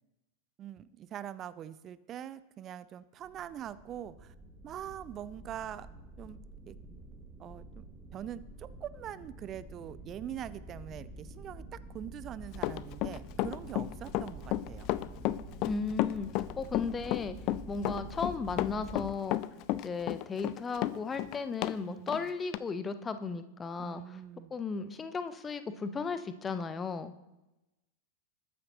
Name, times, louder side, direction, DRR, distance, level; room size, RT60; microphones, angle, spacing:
voice 1, 0.6-4.3 4.6-5.9 6.2-6.4 6.7-6.8 7.4-7.8 8.1-14.9 21.8-22.2 23.8-24.5, right 10 dB, 30° right, 16 dB, 0.5 m, -43 dB
sound 1, 3.2-19.1, right 1 dB, 10° right, 1.9 m, -48 dB
Run, 12.5-21.8 22.1-22.2 22.5-22.6, left 16 dB, 40° left, 0.5 m, -32 dB
voice 2, 15.6-16.3 16.6-17.3 17.7-19.4 19.8-24.2 24.5-27.1, left 4 dB, 20° left, 11 dB, 0.9 m, -35 dB
20.5 x 9.3 x 3.1 m, 1.0 s
figure-of-eight pair, 90°, 0 cm